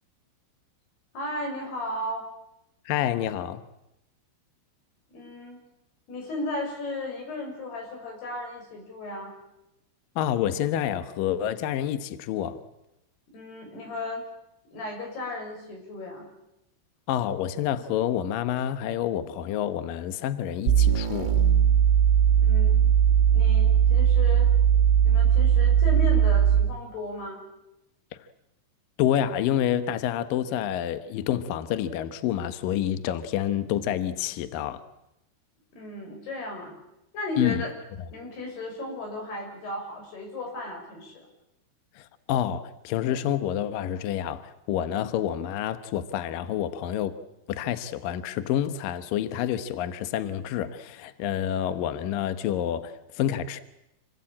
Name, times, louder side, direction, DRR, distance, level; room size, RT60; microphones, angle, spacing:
voice 1, 1.1-2.3 5.1-5.6 6.1-9.3 13.3-14.3 14.7-16.3 22.3-22.8 23.3-24.5 25.1-27.4 35.7-36.8 37.1-37.7 38.1-41.3, left 1 dB, 55° left, 8.2 m, -35 dB
voice 2, 2.9-3.6 10.2-12.6 17.1-21.4 29.0-34.8 37.4-37.6 42.0-47.2 47.5-53.6, left 10 dB, 80° left, 2.0 m, -28 dB
sound 1, 20.7-26.8, right 9 dB, 80° right, 4.7 m, -19 dB
27.5 x 20.5 x 8.7 m
omnidirectional pair, 5.7 m